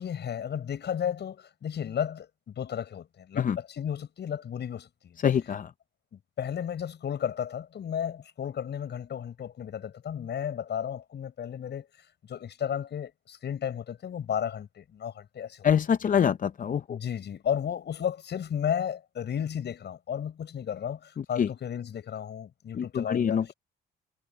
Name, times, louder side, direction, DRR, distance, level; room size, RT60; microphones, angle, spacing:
voice 1, 0.0-5.2 6.1-11.9 12.3-15.7 16.9-23.4, left 8 dB, 60° left, 7.1 m, -33 dB
voice 2, 5.2-5.7 15.6-17.0 21.2-21.5 22.7-23.5, left 8 dB, 40° left, 0.7 m, -25 dB
cardioid pair, 90°, 20 cm